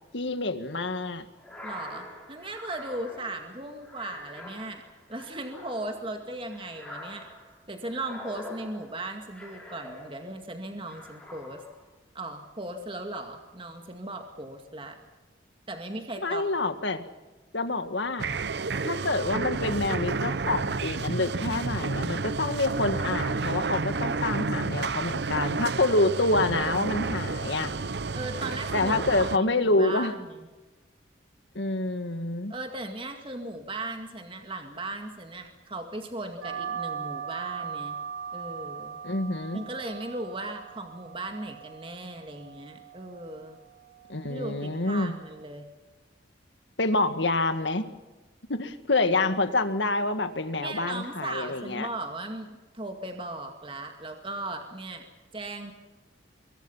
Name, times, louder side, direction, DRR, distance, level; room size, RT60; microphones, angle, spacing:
voice 1, 0.1-1.2 16.2-17.0 17.5-18.3 18.8-27.7 28.7-30.1 31.6-32.5 39.0-39.6 44.1-45.1 46.8-47.9 48.5-51.9, left 2 dB, 75° left, 9 dB, 1.9 m, -27 dB
sound 1, 1.4-10.5 10.9-11.9, left 1 dB, 5° left, 5.6 m, -45 dB
voice 2, 1.6-4.8 5.1-7.3 7.7-11.6 12.1-15.0 15.7-16.5 28.1-30.5 32.5-38.0 38.3-39.0 39.5-43.6 44.2-45.7 50.6-55.1 55.3-55.7, right 2 dB, 30° right, 5 dB, 2.1 m, -37 dB
sound 2, 18.2-29.4, right 4 dB, 60° right, 0.7 m, -30 dB
sound 3, 36.4-45.5, right 7 dB, 75° right, 2.1 m, -40 dB
25.5 x 23.0 x 5.7 m, 1.2 s
head